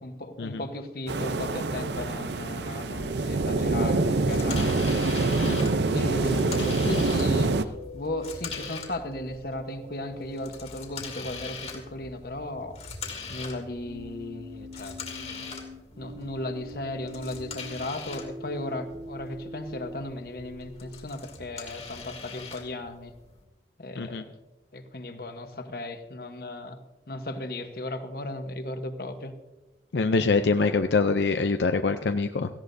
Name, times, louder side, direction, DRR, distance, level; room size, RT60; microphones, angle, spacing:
voice 1, 0.0-4.8 5.9-12.8 13.3-15.5 16.0-23.1 23.8-24.4 24.7-26.8 27.1-29.3, left 1 dB, 55° left, 8 dB, 1.1 m, -36 dB
sound 1, 1.1-7.6, right 3 dB, 80° right, 0.6 m, -25 dB
sound 2, 3.1-10.5 13.8-20.7, right 1 dB, 40° right, 1.5 m, -43 dB
sound 3, 4.3-23.4, left 5 dB, 40° left, 2.1 m, -42 dB
voice 2, 29.9-32.5, left 4 dB, 80° left, 8 dB, 0.5 m, -24 dB
17.5 x 15.0 x 2.7 m, 1.0 s
head